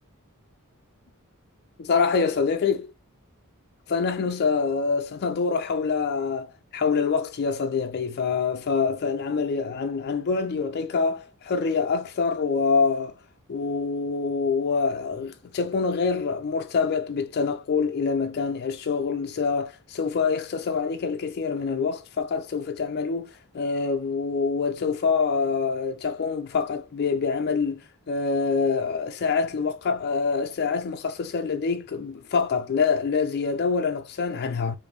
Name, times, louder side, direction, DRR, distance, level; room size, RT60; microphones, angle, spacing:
voice 1, 1.8-2.9 3.9-13.1 13.5-23.3 23.5-27.8 28.1-34.8, left 5 dB, 50° left, 0.4 m, -25 dB
3.4 x 2.5 x 3.1 m
head